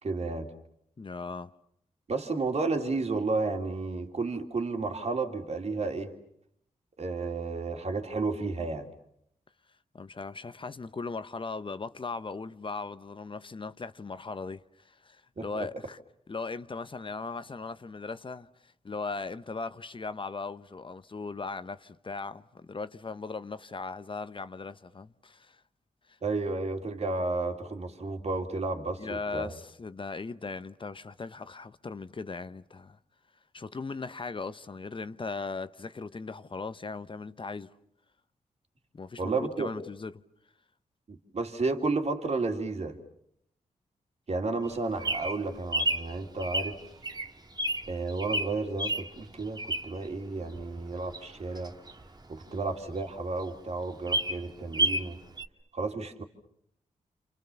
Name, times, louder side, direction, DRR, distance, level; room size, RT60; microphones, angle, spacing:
voice 1, 0.0-0.5 2.1-6.1 7.0-8.9 15.4-15.7 26.2-29.5 39.2-39.7 41.1-43.0 44.3-46.8 47.9-51.7 52.3-55.2 55.7-56.2, right 3 dB, 50° right, 3.0 m, -32 dB
voice 2, 1.0-1.5 9.9-16.0 16.3-25.6 26.1-26.2 29.0-33.0 33.5-37.7 38.9-40.1 52.5-52.6, left 4 dB, 40° left, 1.0 m, -38 dB
Bird vocalization bird call bird song, 44.6-50.1 50.5-52.7 53.1-53.2 53.4-53.5 53.8-55.1 55.4-55.5, right 1 dB, 30° right, 2.0 m, -31 dB
28.5 x 27.5 x 7.1 m
cardioid pair, 65°, 14 cm